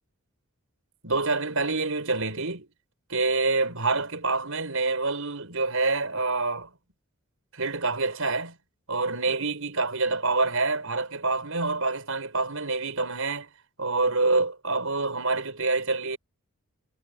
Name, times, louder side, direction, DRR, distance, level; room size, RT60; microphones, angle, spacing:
voice 1, 1.0-2.7 3.1-6.7 7.5-8.5 8.9-13.5 13.8-16.2, right 3 dB, 70° right, 7.3 m, -26 dB
head